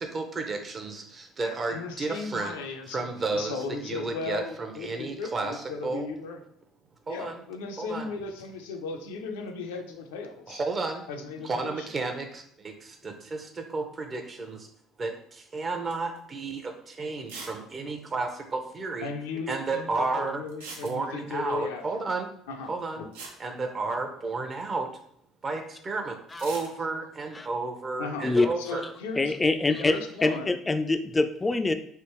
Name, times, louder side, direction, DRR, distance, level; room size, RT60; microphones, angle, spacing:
voice 1, 0.0-2.5 2.9-6.1 7.1-7.4 7.8-8.1 10.5-11.0 11.4-14.7 15.0-19.1 19.5-20.4 20.8-22.3 22.7-23.1 23.4-24.9 25.4-28.9, right 3 dB, 35° right, 4 dB, 0.7 m, -32 dB
voice 2, 1.4-6.4 7.1-10.6 11.1-11.9 19.0-22.1 22.5-23.2 28.0-28.3 28.6-29.3 29.7-30.6, left 4 dB, 85° left, 4 dB, 0.4 m, -36 dB
sound 1, 15.9-16.2 16.6-16.7 17.3-17.6 17.9-18.0 18.1-18.2 20.5-21.3 22.7-22.8 23.1-24.3 26.3-26.7, right 4 dB, 85° right, 0.6 m, -42 dB
voice 3, 29.2-31.7, left 3 dB, 20° left, 8 dB, 0.3 m, -25 dB
3.4 x 2.5 x 3.0 m, 0.67 s
hypercardioid pair, 65°, 0 cm